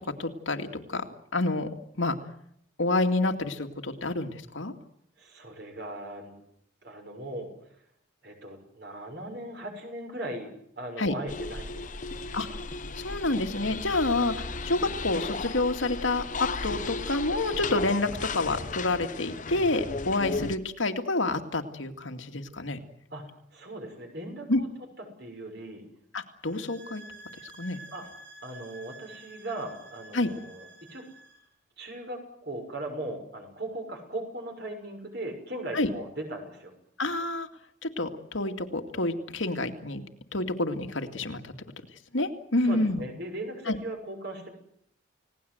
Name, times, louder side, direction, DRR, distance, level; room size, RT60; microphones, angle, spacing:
voice 1, 0.2-1.0 1.3-1.7 2.0-2.2 2.8-4.7 11.0-11.1 12.3-12.5 13.0-22.8 24.5-24.6 26.1-27.0 27.6-27.8 30.1-30.3 35.7-35.9 37.0-37.5 37.8-40.0 40.3-41.5 42.1-43.0 43.7-43.8, left 2 dB, 85° left, 5 dB, 2.3 m, -28 dB
voice 2, 5.2-6.3 6.8-7.5 8.2-10.5 10.8-12.2 23.1-23.2 23.5-24.7 25.2-25.8 27.9-28.0 28.4-31.0 31.8-36.7 42.6-44.5, right 1 dB, 55° right, 4 dB, 6.6 m, -38 dB
sound 1, 11.3-20.6, left 3 dB, 40° left, 1.0 m, -35 dB
sound 2, 26.4-31.5, right 2 dB, 75° right, 7.7 m, -49 dB
30.0 x 18.0 x 8.0 m, 0.72 s
head